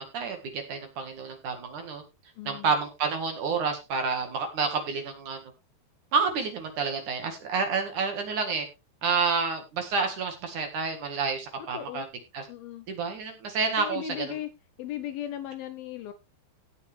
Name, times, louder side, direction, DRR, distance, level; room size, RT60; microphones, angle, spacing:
voice 1, 0.0-2.0 2.5-5.4 6.1-8.7 9.0-12.1 12.3-12.5 12.9-14.4, right 5 dB, 55° right, 5 dB, 2.5 m, -29 dB
voice 2, 2.4-2.7 11.7-12.1 12.5-12.9 13.8-14.5 14.8-16.1, left 10 dB, 80° left, 9 dB, 2.1 m, -36 dB
17.5 x 6.5 x 3.4 m, 0.26 s
omnidirectional pair, 5.4 m